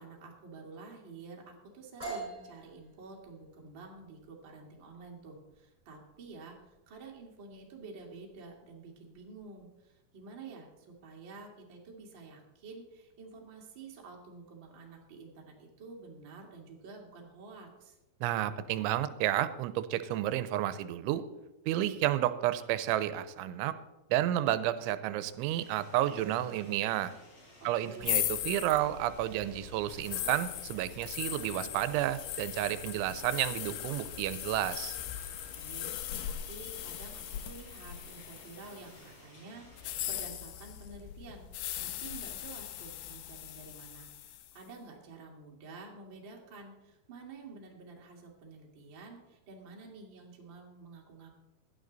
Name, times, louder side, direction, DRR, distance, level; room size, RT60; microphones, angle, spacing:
voice 1, 0.0-18.0 27.8-28.2 35.5-35.9 36.2-51.4, right 3 dB, 40° right, -1 dB, 1.8 m, -50 dB
sound 1, 2.0-9.6, right 3 dB, 10° right, 4.8 m, -47 dB
voice 2, 18.2-21.2 21.7-23.8 24.1-27.1 27.6-35.0, right 13 dB, 90° right, 13 dB, 3.1 m, -31 dB
sound 2, 25.5-40.3, equal, 30° left, 5.3 m, -56 dB
sound 3, 28.0-39.0 39.7-44.6, left 12 dB, 75° left, 2.6 m, -39 dB
16.5 x 11.5 x 4.0 m, 1.0 s
omnidirectional pair, 5.4 m